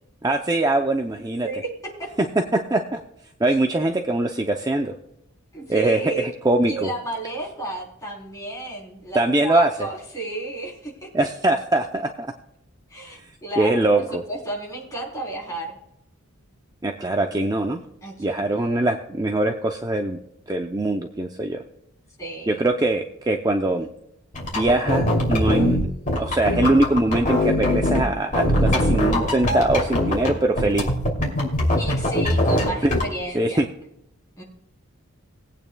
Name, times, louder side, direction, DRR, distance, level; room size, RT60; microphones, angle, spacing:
voice 1, 0.2-1.5 2.7-3.0 3.4-4.9 5.7-6.9 9.1-9.9 11.1-12.3 13.2-13.3 13.6-14.2 16.8-17.8 18.2-20.2 20.5-21.6 22.5-23.9 24.5-25.8 26.2-30.9 32.8-32.9 33.3-33.7, right 2 dB, 15° right, 3 dB, 0.5 m, -22 dB
voice 2, 1.2-1.7 5.5-6.3 6.7-11.1 12.9-15.8 18.0-18.8 22.2-22.6 31.8-33.6 34.4-34.5, right 2 dB, 15° left, -3 dB, 3.6 m, -33 dB
sound 1, 24.3-28.0 28.3-30.3 30.6-33.0, left 1 dB, 35° left, 2.8 m, -22 dB
21.0 x 8.8 x 2.3 m, 0.82 s
head